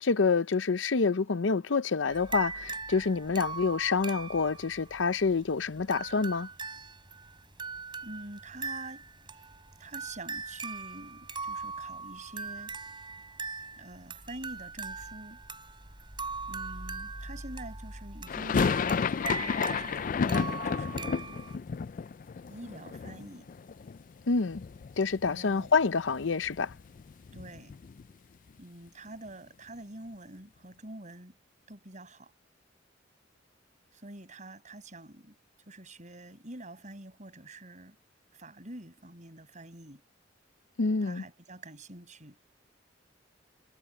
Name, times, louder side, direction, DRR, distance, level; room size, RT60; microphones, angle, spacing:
voice 1, 0.0-6.5 24.3-24.6 25.0-26.7 40.8-41.2, left 4 dB, 85° left, 0.7 m, -27 dB
sound 1, 2.1-21.6, right 4 dB, 25° right, 7.6 m, -40 dB
voice 2, 8.0-9.5 9.8-12.8 13.8-15.4 16.5-18.7 19.4-21.4 22.5-23.5 25.2-25.7 27.3-27.7 28.6-31.4 31.7-32.3 33.9-35.4 35.7-38.0 38.3-40.0 41.0-42.4, right 1 dB, 40° right, 7.5 m, -46 dB
sound 2, 18.3-24.2 24.5-25.3 25.6-25.7 26.0-28.1, left 5 dB, 45° left, 0.4 m, -32 dB
head